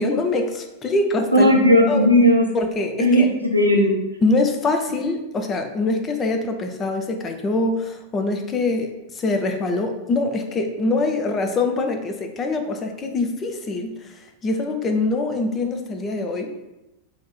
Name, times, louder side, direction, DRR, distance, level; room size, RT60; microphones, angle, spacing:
voice 1, 0.0-1.5 1.9-2.0 2.5-3.3 4.2-14.1 14.4-16.5, left 2 dB, 25° left, 4 dB, 0.5 m, -24 dB
voice 2, 1.3-2.4 3.0-3.9, equal, 85° right, 0 dB, 0.7 m, -15 dB
4.1 x 2.7 x 4.1 m, 0.98 s
figure-of-eight pair, 90°, 0 cm